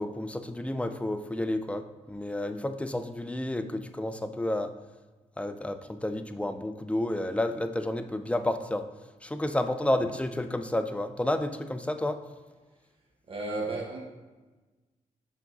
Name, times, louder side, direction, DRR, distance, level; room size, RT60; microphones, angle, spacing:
voice 1, 0.0-4.7 5.4-8.9 9.2-12.2, left 1 dB, 10° left, 8 dB, 0.4 m, -30 dB
voice 2, 13.3-14.0, right 2 dB, 45° right, -2 dB, 1.3 m, -33 dB
6.0 x 4.5 x 4.0 m, 1.2 s
cardioid pair, 95°, 14 cm